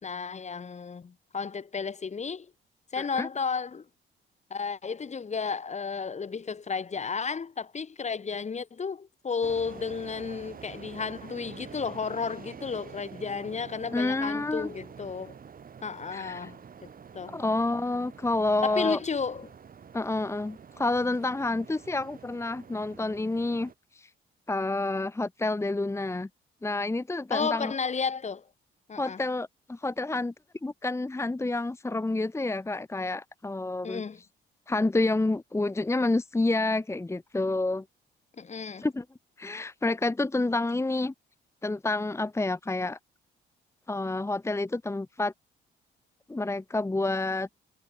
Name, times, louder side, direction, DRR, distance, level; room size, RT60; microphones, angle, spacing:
voice 1, 0.0-2.5 2.9-3.9 4.5-15.4 15.8-17.4 18.6-19.5 27.3-28.5 28.9-29.2 33.8-34.2 38.4-38.9, left 5 dB, 35° left, 2.2 m, -33 dB
voice 2, 3.0-3.3 13.9-14.7 16.1-16.5 17.3-19.0 19.9-24.1 24.5-26.3 26.6-27.7 29.0-30.3 30.6-34.0 34.7-37.8 38.8-39.0 39.4-41.1 41.6-43.0 43.9-45.3 46.3-47.5, left 2 dB, 15° left, 1.3 m, -29 dB
sound 1, 9.4-23.7, right 7 dB, 45° right, 4.6 m, -47 dB
cardioid pair, 90°, 20 cm